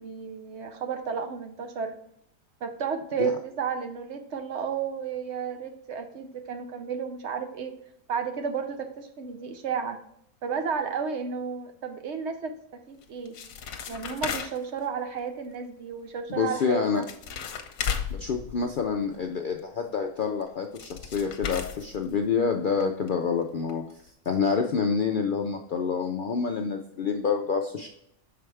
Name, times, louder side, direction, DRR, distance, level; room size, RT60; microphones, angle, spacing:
voice 1, 0.0-1.9 2.6-7.7 8.1-10.0 10.4-13.4 13.9-17.1, right 6 dB, 60° right, 6 dB, 0.9 m, -32 dB
sound 1, 13.0-14.8 16.7-16.8 17.0-19.2 20.4-20.5 20.8-22.5 22.8-22.9 23.1-23.2 23.7-23.8 24.1-24.2, left 7 dB, 85° left, 1.1 m, -35 dB
voice 2, 16.3-17.0 18.1-23.8 24.3-27.9, left 5 dB, 60° left, 4 dB, 0.5 m, -27 dB
6.0 x 4.7 x 3.3 m, 0.72 s
omnidirectional pair, 1.4 m